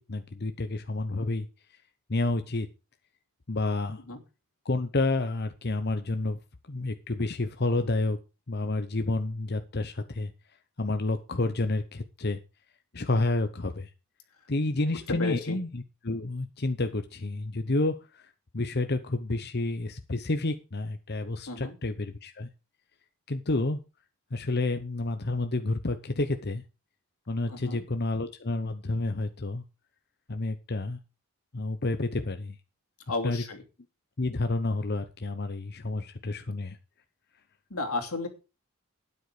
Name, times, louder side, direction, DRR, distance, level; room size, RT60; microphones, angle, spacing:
voice 1, 0.0-1.5 2.1-2.7 3.5-4.0 4.6-6.4 6.7-8.2 8.5-10.3 10.8-12.4 12.9-13.9 14.5-22.5 23.3-23.8 24.3-26.6 27.3-29.6 30.3-31.0 31.5-32.6 33.2-33.4 34.2-36.8, left 2 dB, 50° left, 8 dB, 0.9 m, -30 dB
voice 2, 15.1-15.6 21.5-21.8 27.5-27.8 33.1-33.6 37.7-38.3, left 3 dB, 90° left, 3 dB, 3.0 m, -32 dB
12.5 x 9.7 x 5.0 m, 0.30 s
head